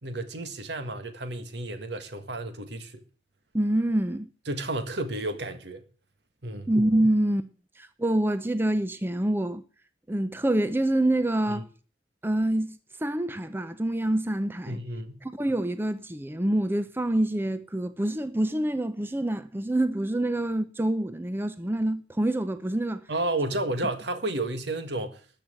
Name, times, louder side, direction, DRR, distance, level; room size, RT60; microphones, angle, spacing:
voice 1, 0.0-3.0 4.5-5.8 6.4-6.7 11.5-11.6 14.7-15.2 23.1-25.2, right 2 dB, 70° right, 1.7 m, -32 dB
voice 2, 3.5-4.3 6.7-7.5 7.8-9.6 10.1-11.7 12.2-14.8 15.2-23.0, right 1 dB, 10° right, 0.6 m, -26 dB
13.5 x 5.9 x 8.8 m
head